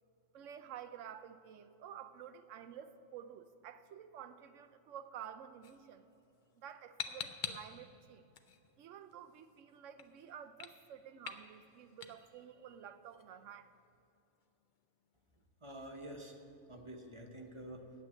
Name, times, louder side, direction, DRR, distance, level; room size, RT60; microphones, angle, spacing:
voice 1, 0.3-6.1 6.6-8.2 8.8-13.7, right 9 dB, 70° right, 10 dB, 0.9 m, -51 dB
sound 1, 5.6-15.5, left 6 dB, 50° left, 0.6 m, -50 dB
voice 2, 15.6-16.4 16.7-17.9, right 1 dB, 30° right, 3 dB, 0.7 m, -48 dB
8.9 x 7.9 x 9.1 m, 2.7 s
omnidirectional pair, 1.4 m